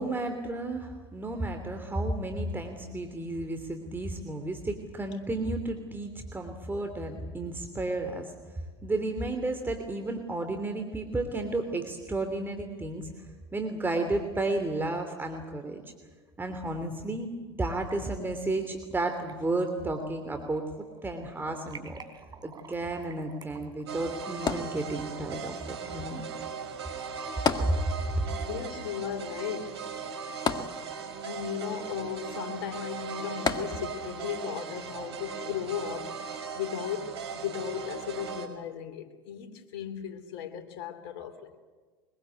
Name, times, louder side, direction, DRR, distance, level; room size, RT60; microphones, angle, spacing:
voice 1, 0.0-8.3 8.8-15.8 16.4-17.3 17.6-22.0 22.4-26.2 27.7-27.8 28.1-28.2, right 2 dB, 15° right, 3.2 m, -32 dB
sound 1, 13.8-14.5 14.8-14.9 16.4-16.5 17.6-18.0 18.5-19.0 19.3-20.6 20.9-24.9, right 5 dB, 30° right, 4.3 m, -50 dB
sound 2, 23.9-38.5, right 6 dB, 80° right, 6.0 m, -38 dB
sound 3, 24.5-25.4 27.5-28.3 28.6-28.7 30.5-31.3 33.5-34.2 34.9-35.0, left 6 dB, 30° left, 2.0 m, -31 dB
voice 2, 28.4-29.9 31.2-41.6, left 9 dB, 65° left, 3.3 m, -36 dB
24.0 x 22.5 x 8.3 m
hypercardioid pair, 80°, 14 cm